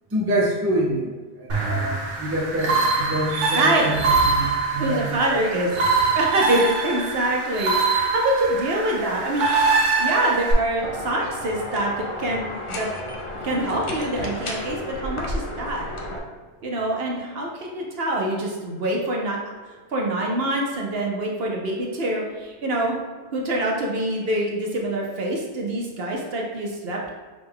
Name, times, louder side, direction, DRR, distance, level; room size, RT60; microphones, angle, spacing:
voice 1, 0.1-1.1 1.4-5.4, right 1 dB, 15° right, -3 dB, 0.5 m, -26 dB
sound 1, 1.5-10.5, right 4 dB, 85° right, 1.2 m, -23 dB
voice 2, 3.5-3.9 4.8-9.7 10.0-12.9 13.4-15.9 16.6-19.4 19.9-23.0 23.3-27.1, right 1 dB, 60° right, -1 dB, 0.9 m, -25 dB
sound 2, 10.8-16.2, left 1 dB, 45° left, 0.4 m, -32 dB
5.1 x 2.2 x 3.5 m, 1.4 s
omnidirectional pair, 1.2 m